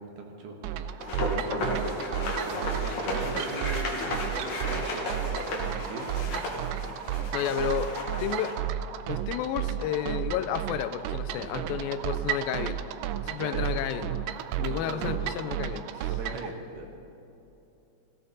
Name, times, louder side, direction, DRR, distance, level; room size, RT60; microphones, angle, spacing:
voice 1, 0.0-1.9 2.4-6.3 11.4-11.7 13.4-13.8 14.7-15.2 16.1-16.9, right 3 dB, 65° right, 1 dB, 2.7 m, -40 dB
sound 1, 0.6-16.5, right 10 dB, 90° right, 1.9 m, -33 dB
sound 2, 1.0-8.5, left 2 dB, 50° left, 2.6 m, -34 dB
voice 2, 7.3-8.7 9.1-12.8 13.1-14.3 14.6-16.2, left 9 dB, 80° left, 10 dB, 2.2 m, -32 dB
17.5 x 15.0 x 4.1 m, 2.9 s
omnidirectional pair, 4.5 m